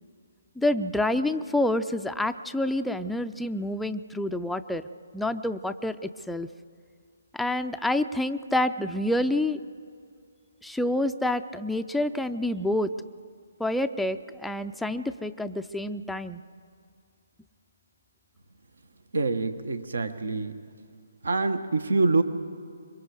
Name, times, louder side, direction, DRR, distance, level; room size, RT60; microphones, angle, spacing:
voice 1, 0.6-4.8 5.1-6.5 7.3-9.6 10.6-12.9 13.6-16.4, left 1 dB, ahead, 7 dB, 0.4 m, -28 dB
voice 2, 19.1-20.5 21.2-22.2, right 3 dB, 75° right, 10 dB, 1.1 m, -25 dB
25.0 x 22.0 x 4.8 m, 2.2 s
figure-of-eight pair, 145°, 0 cm